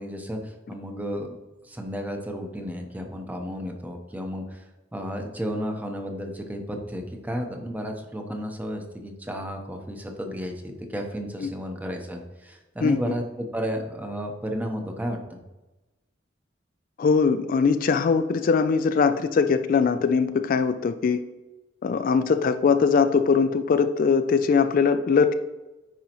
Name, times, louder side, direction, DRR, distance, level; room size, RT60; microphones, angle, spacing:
voice 1, 0.0-1.4 1.6-4.6 4.9-15.4, equal, 10° right, 3 dB, 0.8 m, -33 dB
voice 2, 12.8-13.1 17.0-21.2 21.8-25.3, left 5 dB, 50° left, 10 dB, 0.3 m, -21 dB
9.3 x 5.0 x 3.0 m, 1.1 s
head